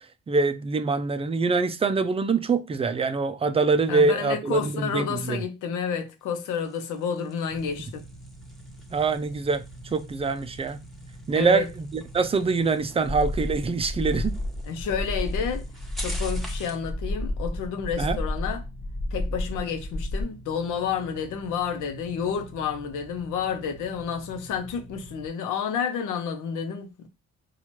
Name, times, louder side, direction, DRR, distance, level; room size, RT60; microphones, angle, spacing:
voice 1, 0.3-5.4 8.9-9.6 9.9-10.8 11.3-14.4 18.0-18.2, right 4 dB, 20° right, 0.4 m, -24 dB
voice 2, 3.9-8.0 11.3-11.7 14.7-15.6 16.0-18.6 19.1-27.1, left 7 dB, 85° left, 0.7 m, -30 dB
Low Speed Skid Crash OS, 6.2-16.9, equal, ahead, 0.9 m, -47 dB
sound 1, 7.5-25.3, right 2 dB, 65° left, 1.0 m, -46 dB
sound 2, 13.1-20.2, left 1 dB, 40° left, 1.3 m, -31 dB
4.2 x 2.4 x 3.0 m
cardioid pair, 90°, 30 cm